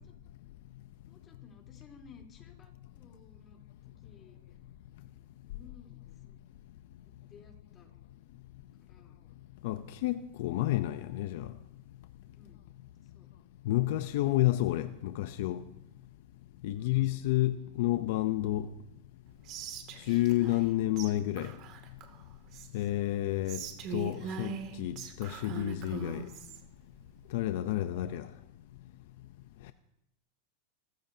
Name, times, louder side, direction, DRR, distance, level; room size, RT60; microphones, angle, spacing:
voice 1, 1.1-3.6 4.0-4.6 5.5-6.4 7.1-7.9 8.8-9.2 12.3-12.6 13.0-13.3 16.7-17.3 20.0-20.2, left 5 dB, 30° left, 3.6 m, -58 dB
voice 2, 9.6-11.5 13.6-15.6 16.6-18.7 20.1-21.5 22.7-26.3 27.3-28.3, left 15 dB, 65° left, 0.6 m, -30 dB
Whispering, 19.5-20.7 21.0-21.1 21.4-22.9 23.4-26.6, right 7 dB, 45° right, 2.4 m, -42 dB
29.0 x 14.5 x 2.8 m
supercardioid pair, 130°, 0 cm